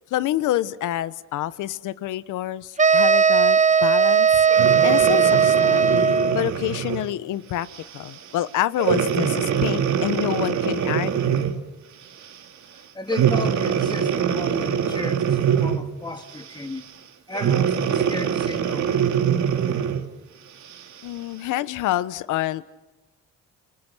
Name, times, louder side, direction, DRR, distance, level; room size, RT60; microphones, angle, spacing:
voice 1, 0.1-4.4 4.8-5.9 6.3-7.7 7.9-11.5 21.0-22.7, left 13 dB, 85° left, 1.1 m, -27 dB
sound 1, 2.8-6.5, right 6 dB, 25° right, 0.9 m, -17 dB
Breathing, 4.5-7.1 7.7-8.0 8.8-11.7 13.1-16.0 17.3-20.1 20.7-20.8, right 8 dB, 70° right, 2.8 m, -23 dB
voice 2, 12.9-16.9 17.3-18.9, left 2 dB, 15° left, 2.6 m, -33 dB
29.0 x 27.0 x 6.2 m
cardioid pair, 90°, 30 cm